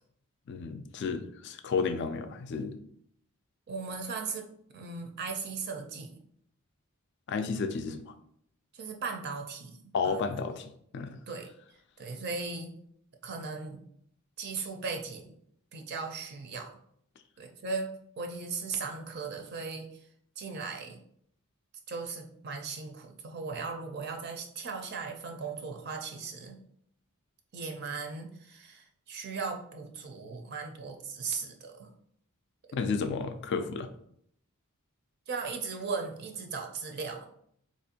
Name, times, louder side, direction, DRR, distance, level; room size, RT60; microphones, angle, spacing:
voice 1, 0.5-2.8 7.3-8.1 9.9-10.6 10.9-11.2 32.7-33.9, left 5 dB, 50° left, 9 dB, 0.3 m, -32 dB
voice 2, 3.7-4.5 4.7-6.1 8.7-9.8 10.0-10.4 11.3-12.7 13.2-13.8 14.4-15.3 15.7-16.7 17.4-20.1 20.4-21.0 21.9-26.6 27.5-31.9 32.8-32.9 35.3-37.3, right 4 dB, 50° right, 3 dB, 0.4 m, -37 dB
4.2 x 2.5 x 2.7 m, 0.69 s
head